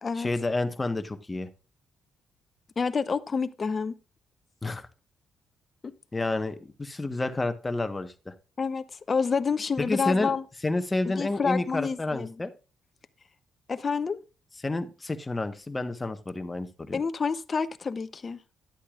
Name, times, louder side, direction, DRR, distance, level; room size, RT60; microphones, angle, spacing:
voice 1, 0.1-1.5 4.6-4.9 6.1-8.3 9.8-10.4 10.6-12.5 14.6-17.0, left 2 dB, 20° left, 1.2 m, -30 dB
voice 2, 2.8-4.0 5.8-5.9 8.6-10.4 11.1-12.3 13.7-14.2 16.9-18.4, left 5 dB, 40° left, 0.8 m, -28 dB
12.0 x 8.4 x 2.5 m
cardioid pair, 75°, 0 cm